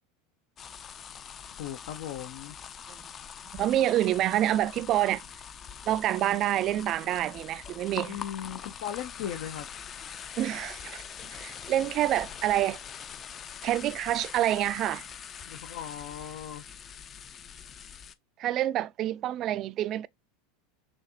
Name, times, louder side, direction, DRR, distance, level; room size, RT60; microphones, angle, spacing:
sound 1, 0.6-18.1, left 8 dB, 30° left, 0.4 m, -43 dB
voice 1, 1.6-2.5 8.1-9.7 15.5-16.6, left 10 dB, 75° left, 0.7 m, -37 dB
voice 2, 3.5-5.2 5.9-8.2 10.4-12.8 13.6-15.1 18.4-20.1, right 13 dB, 40° right, 0.3 m, -27 dB
6.4 x 2.4 x 2.7 m
supercardioid pair, 130°, 0 cm